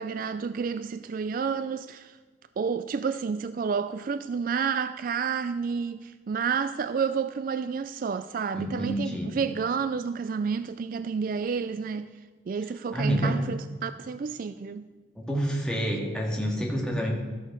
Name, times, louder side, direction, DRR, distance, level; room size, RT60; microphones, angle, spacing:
voice 1, 0.0-2.2 2.6-12.1 12.5-14.9, right 6 dB, 45° right, 0.3 m, -30 dB
voice 2, 8.5-9.3 12.9-13.4 15.2-17.1, equal, 5° left, 1.8 m, -28 dB
13.0 x 6.5 x 6.0 m
head